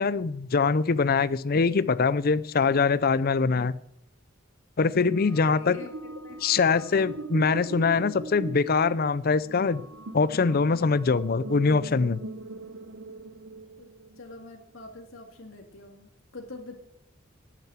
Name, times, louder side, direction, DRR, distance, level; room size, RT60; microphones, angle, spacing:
voice 1, 0.0-3.7 4.8-5.8 6.4-9.8 10.1-12.2, left 4 dB, 45° left, 17 dB, 0.5 m, -23 dB
sound 1, 4.9-14.3, right 2 dB, 65° right, 1.0 m, -41 dB
voice 2, 5.3-5.9 6.2-6.4 13.8-13.9 14.2-16.8, left 2 dB, 75° left, 3 dB, 2.0 m, -44 dB
12.0 x 9.1 x 7.4 m, 0.73 s
head